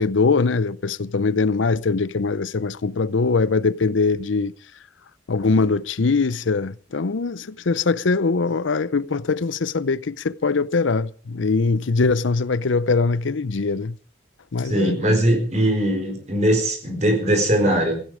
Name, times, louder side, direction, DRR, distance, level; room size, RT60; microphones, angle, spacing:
voice 1, 0.0-4.5 5.3-13.9 14.5-15.2, left 4 dB, 90° left, 0.6 m, -22 dB
voice 2, 14.7-18.0, right 1 dB, 35° right, 4.4 m, -20 dB
16.0 x 16.0 x 5.0 m
head